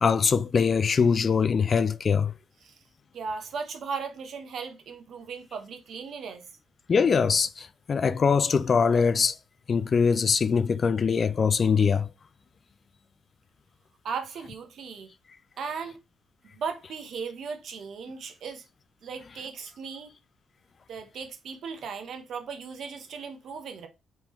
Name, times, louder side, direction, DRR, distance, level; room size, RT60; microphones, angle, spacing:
voice 1, 0.0-2.3 6.9-9.4 9.7-12.1, left 6 dB, 40° left, 0.4 m, -23 dB
voice 2, 3.1-6.4 14.0-15.1 15.6-16.0 16.5-18.6 19.0-20.1 20.9-23.9, right 5 dB, 65° right, 0.9 m, -37 dB
3.6 x 3.6 x 3.1 m
cardioid pair, 90°, 0 cm